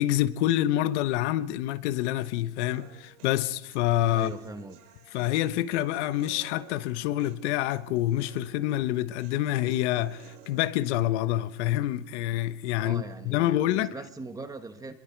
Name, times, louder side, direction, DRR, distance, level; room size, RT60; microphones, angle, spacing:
voice 1, 0.0-4.3 5.1-13.9, left 13 dB, 70° left, 1.2 m, -27 dB
Human voice, 2.7-10.7, right 9 dB, 70° right, 4.0 m, -53 dB
voice 2, 4.1-4.8 12.8-14.9, right 3 dB, 10° right, 1.2 m, -41 dB
27.5 x 22.5 x 4.7 m
supercardioid pair, 165°, 36 cm